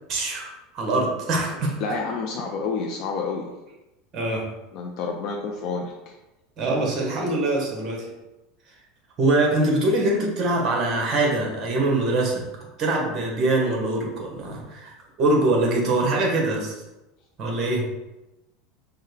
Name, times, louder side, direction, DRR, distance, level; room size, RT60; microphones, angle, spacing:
voice 1, 0.1-1.8 4.1-4.5 6.6-8.1 9.2-12.5 12.8-14.9 15.2-16.7 17.4-17.9, right 2 dB, 35° right, 0 dB, 1.2 m, -23 dB
voice 2, 1.8-3.5 4.7-6.2, left 4 dB, 50° left, 0 dB, 0.4 m, -29 dB
5.4 x 2.2 x 3.3 m, 1.0 s
supercardioid pair, 140°, 0 cm